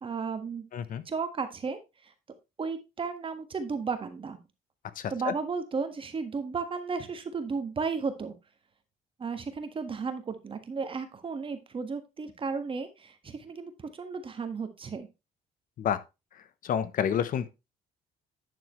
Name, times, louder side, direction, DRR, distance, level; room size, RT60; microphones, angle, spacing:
voice 1, 0.0-0.7 1.1-2.1 2.6-4.4 5.1-8.3 9.2-15.1, right 5 dB, 30° right, 1.6 m, -34 dB
voice 2, 0.7-1.0 5.3-5.4 15.8-16.0 16.6-17.5, left 8 dB, 55° left, 0.9 m, -28 dB
9.3 x 7.0 x 3.2 m
cardioid pair, 110°, 17 cm